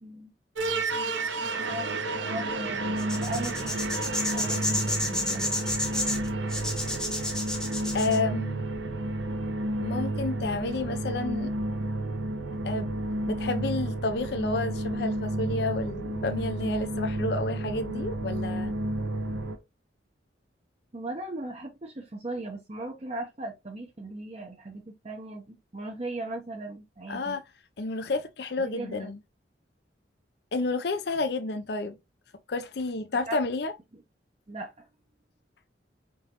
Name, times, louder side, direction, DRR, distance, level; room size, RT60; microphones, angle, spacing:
voice 1, 0.0-0.3 1.4-3.8 4.3-5.6 20.9-27.4 28.6-29.1 33.3-33.4 34.5-34.9, right 2 dB, 35° right, 0.7 m, -38 dB
sound 1, 0.6-19.6, right 2 dB, 90° right, 0.9 m, -31 dB
sound 2, 3.0-8.2, left 1 dB, 5° left, 0.8 m, -31 dB
voice 2, 7.9-8.6 9.8-11.5 12.6-12.9 13.3-18.7 27.1-27.4 27.8-29.2 30.5-32.0 32.5-33.7, left 3 dB, 60° left, 0.5 m, -30 dB
4.9 x 3.7 x 2.9 m
head